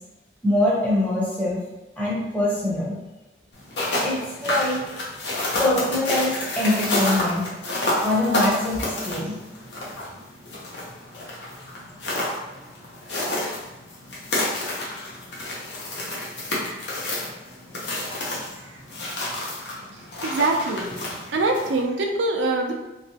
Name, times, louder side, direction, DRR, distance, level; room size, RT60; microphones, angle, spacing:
voice 1, 0.4-1.6 2.0-3.0 4.0-4.9 5.5-7.4 8.0-9.4, left 1 dB, 10° left, -7 dB, 0.8 m, -24 dB
sound 1, 3.5-21.8, left 1 dB, 70° left, 0.9 m, -29 dB
voice 2, 19.9-20.9 21.3-22.7, right 2 dB, 85° right, 2 dB, 0.5 m, -25 dB
3.2 x 3.0 x 2.8 m, 1.0 s
head